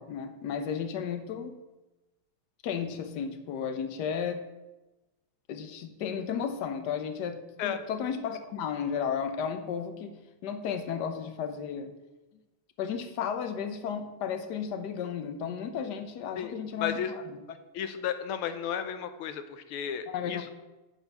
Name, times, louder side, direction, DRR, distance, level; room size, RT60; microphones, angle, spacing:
voice 1, 0.0-1.6 2.6-4.4 5.5-10.2 10.4-11.9 12.8-17.4 20.1-20.4, left 7 dB, 60° left, 9 dB, 1.3 m, -34 dB
voice 2, 16.4-17.1 17.7-20.5, left 8 dB, 85° left, 10 dB, 1.6 m, -33 dB
10.5 x 4.5 x 7.0 m, 1.1 s
omnidirectional pair, 2.3 m